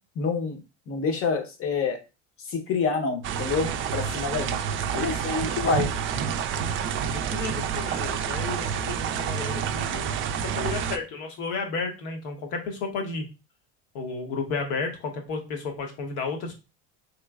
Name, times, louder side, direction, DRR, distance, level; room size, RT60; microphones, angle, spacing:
voice 1, 0.2-0.6 0.9-2.0 2.5-4.6 4.9-5.9, left 5 dB, 40° left, 5 dB, 0.9 m, -27 dB
sound 1, 3.2-11.0, right 7 dB, 40° right, 0.4 m, -28 dB
voice 2, 4.1-4.5 5.5-5.6 7.0-10.1 10.4-13.2 13.9-16.5, left 4 dB, 70° left, 3 dB, 1.1 m, -33 dB
3.1 x 2.9 x 2.3 m, 0.29 s
supercardioid pair, 95°, 33 cm